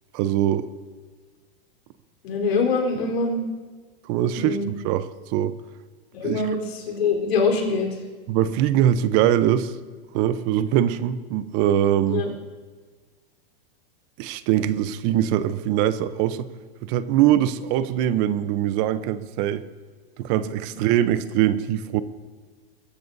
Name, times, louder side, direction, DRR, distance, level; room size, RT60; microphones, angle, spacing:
voice 1, 0.1-0.7 4.0-5.6 6.2-6.4 8.3-9.7 10.1-12.3 14.2-16.5 16.8-19.6 20.2-22.0, right 11 dB, 45° right, 13 dB, 0.8 m, -22 dB
voice 2, 2.2-3.4 4.3-4.7 6.1-8.0 12.1-12.3, left 4 dB, 80° left, 1 dB, 4.1 m, -24 dB
22.5 x 14.5 x 2.7 m, 1.5 s
hypercardioid pair, 125°, 31 cm